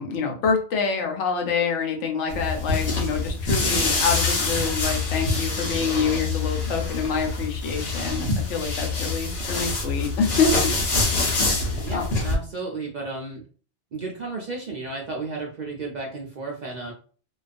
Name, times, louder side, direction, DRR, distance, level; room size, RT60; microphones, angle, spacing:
voice 1, 0.0-10.7 11.9-12.0, left 5 dB, 90° left, 2 dB, 1.0 m, -26 dB
sound 1, 2.3-12.4, left 3 dB, 60° left, 1.0 m, -25 dB
voice 2, 11.8-13.4 13.9-16.9, right 3 dB, 60° right, -1 dB, 0.4 m, -33 dB
2.4 x 2.2 x 2.4 m, 0.41 s
omnidirectional pair, 1.2 m